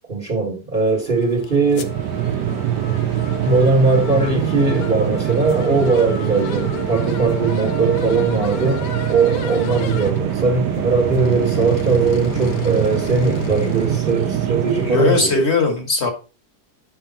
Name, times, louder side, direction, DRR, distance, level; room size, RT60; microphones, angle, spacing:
voice 1, 0.1-2.0 3.4-15.4, right 4 dB, 30° right, 1.8 m, -20 dB
sound 1, 0.7-15.3, left 9 dB, 85° left, 1.4 m, -32 dB
sound 2, 1.6-15.4, right 11 dB, 85° right, 1.2 m, -24 dB
voice 2, 14.8-16.1, left 3 dB, 40° left, 2.1 m, -18 dB
9.1 x 5.5 x 4.2 m
omnidirectional pair, 1.8 m